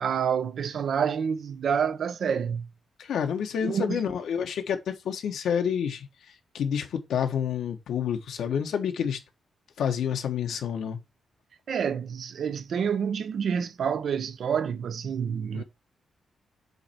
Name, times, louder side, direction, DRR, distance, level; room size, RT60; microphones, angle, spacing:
voice 1, 0.0-2.7 3.6-4.0 11.7-15.6, right 7 dB, 55° right, 0.7 m, -28 dB
voice 2, 3.0-6.1 6.5-9.2 9.8-11.0 15.5-15.6, left 8 dB, 80° left, 1.3 m, -28 dB
8.2 x 3.4 x 4.4 m
wide cardioid pair, 145°, 0 cm